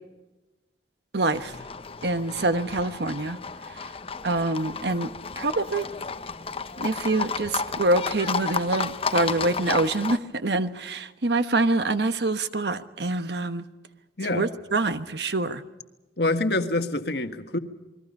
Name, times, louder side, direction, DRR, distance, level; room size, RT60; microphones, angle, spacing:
voice 1, 1.1-1.5 2.0-3.4 3.7-3.9 4.2-5.1 5.4-5.9 6.8-13.7 14.3-15.6, right 2 dB, 70° right, 10 dB, 1.2 m, -25 dB
Livestock farm animals working animals, 1.3-10.2, left 5 dB, 35° left, 0.8 m, -32 dB
voice 2, 14.2-14.5 16.2-17.6, left 2 dB, 65° left, 7 dB, 1.6 m, -26 dB
28.5 x 22.0 x 5.5 m, 1.1 s
head